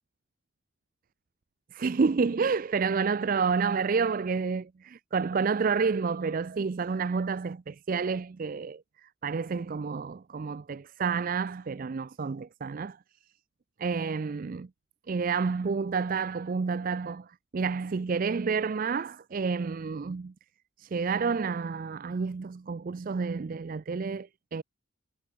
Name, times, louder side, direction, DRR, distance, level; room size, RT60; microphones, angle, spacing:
voice 1, 1.7-13.0 13.8-14.7 15.1-17.3 17.5-20.3 20.8-24.6, right 5 dB, 40° right, 0.4 m, -29 dB
head